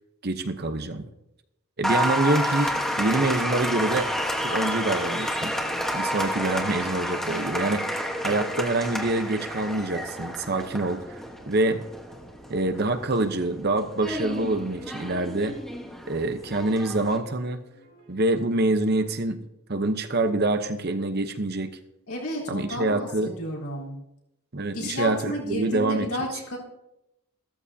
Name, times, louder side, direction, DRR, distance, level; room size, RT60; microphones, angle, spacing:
voice 1, 0.2-1.1 1.8-4.1 4.4-5.5 5.9-11.2 11.5-11.8 12.5-15.5 16.1-17.6 18.1-19.4 19.7-21.8 22.5-23.3 24.5-26.1, right 2 dB, 45° right, 8 dB, 0.8 m, -26 dB
Applause, 1.8-17.2, equal, ahead, 1.2 m, -30 dB
sound 1, 11.1-19.1, right 2 dB, 80° right, 4.9 m, -53 dB
voice 2, 22.1-24.0 24.7-26.6, left 1 dB, 80° left, -4 dB, 3.7 m, -32 dB
15.0 x 13.5 x 2.8 m, 0.87 s
head